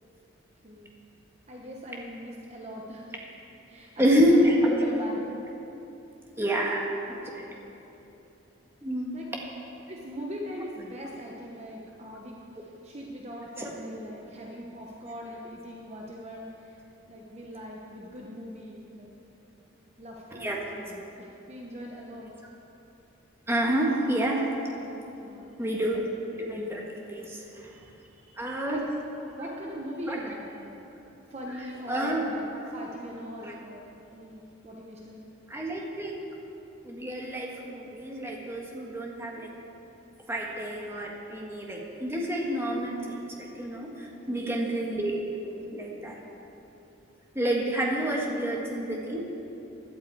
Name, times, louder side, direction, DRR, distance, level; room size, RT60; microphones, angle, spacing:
voice 1, 0.6-1.0 1.5-3.1 3.7-5.3 7.4-7.8 9.1-9.3 9.9-16.8 17.1-19.1 20.0-22.3 25.0-25.6 27.7-28.8 29.2-30.7 31.3-32.4 32.7-35.2 44.0-44.6 48.2-48.5, equal, 35° right, -2 dB, 1.0 m, -41 dB
voice 2, 4.0-4.8 6.4-6.9 7.3-7.4 8.8-9.3 13.6-13.7 20.4-20.6 23.5-24.4 25.6-27.7 28.4-28.8 30.1-30.2 31.9-32.3 33.4-33.5 35.5-36.2 36.8-39.5 40.3-46.2 47.3-49.2, equal, 10° right, -2 dB, 1.5 m, -28 dB
16.0 x 11.0 x 4.7 m, 3.0 s
head